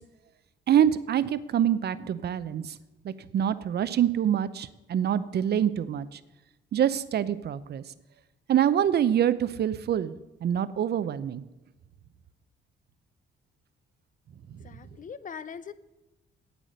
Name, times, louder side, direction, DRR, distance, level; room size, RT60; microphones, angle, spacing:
voice 1, 0.7-2.8 3.0-6.2 6.7-7.8 8.5-10.1 10.4-11.4, right 10 dB, 55° right, 14 dB, 0.7 m, -25 dB
voice 2, 14.6-15.7, left 7 dB, 40° left, 15 dB, 0.7 m, -41 dB
9.3 x 8.5 x 6.4 m, 1.0 s
cardioid pair, 90°, 20 cm